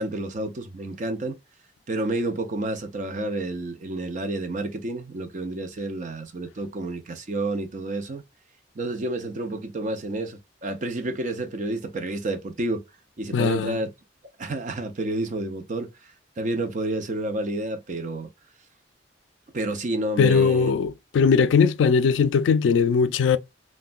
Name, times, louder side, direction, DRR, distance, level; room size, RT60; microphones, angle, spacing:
voice 1, 0.0-1.4 1.9-8.2 8.8-12.8 13.2-13.9 14.4-15.9 16.4-18.3 19.5-20.7, right 2 dB, 45° right, 0.5 m, -29 dB
voice 2, 13.3-13.7 20.2-23.4, left 6 dB, 90° left, 0.3 m, -20 dB
3.1 x 2.1 x 2.4 m
head